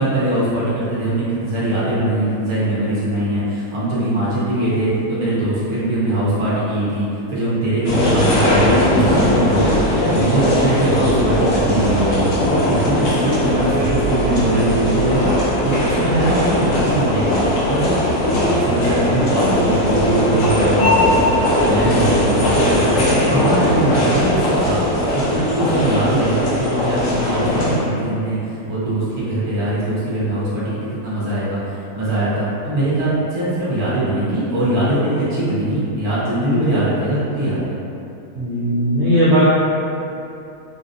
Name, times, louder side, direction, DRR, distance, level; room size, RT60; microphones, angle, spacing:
voice 1, 0.0-24.8 25.1-37.8, right 1 dB, 25° right, -10 dB, 0.7 m, -21 dB
sound 1, 7.9-27.8, left 1 dB, 70° left, 1.1 m, -18 dB
voice 2, 38.3-39.6, equal, 60° right, -10 dB, 0.7 m, -16 dB
3.3 x 2.5 x 2.7 m, 2.7 s
omnidirectional pair, 1.7 m